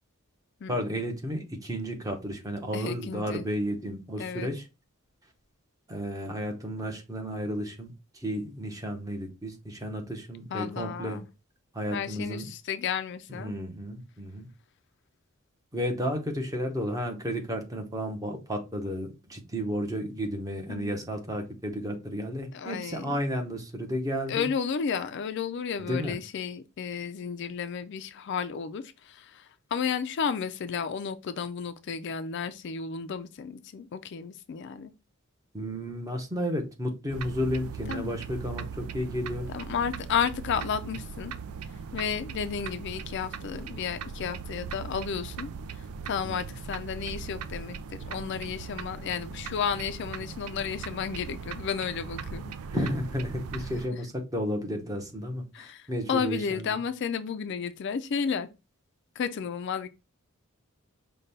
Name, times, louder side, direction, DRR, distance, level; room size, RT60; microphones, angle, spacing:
voice 1, 0.7-4.7 5.9-11.2 11.7-12.5 13.3-14.5 15.7-24.5 25.8-26.2 35.5-39.5 46.2-46.4 52.7-56.7, equal, 15° right, 0.8 m, -32 dB
voice 2, 2.7-3.4 4.2-4.5 10.5-11.3 11.9-13.6 20.7-21.0 22.5-23.2 24.3-34.9 37.9-38.2 39.5-41.3 41.9-47.8 48.1-52.5 55.5-58.5 59.2-59.9, left 6 dB, 55° left, 0.4 m, -32 dB
sound 1, 37.1-53.9, right 6 dB, 85° right, 0.4 m, -39 dB
5.2 x 2.2 x 4.0 m
head